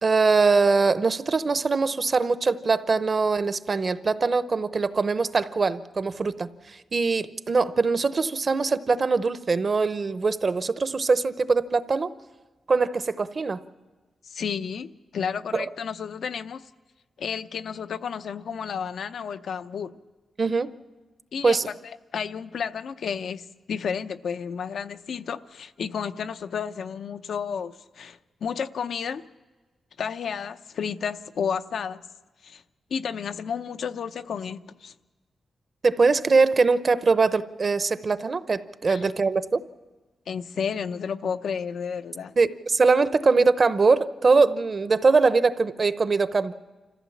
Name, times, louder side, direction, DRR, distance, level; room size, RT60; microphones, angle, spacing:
voice 1, 0.0-12.1 12.7-13.6 15.5-15.7 20.4-20.7 21.4-21.7 35.8-39.6 42.4-46.5, right 4 dB, 45° right, 13 dB, 0.8 m, -22 dB
voice 2, 14.2-16.7 17.2-20.0 21.3-21.7 22.1-29.2 30.0-32.0 32.4-32.6 32.9-34.9 38.9-39.1 40.3-42.4, left 7 dB, 80° left, 10 dB, 0.7 m, -32 dB
26.5 x 15.0 x 7.2 m, 1.3 s
cardioid pair, 100°, 0 cm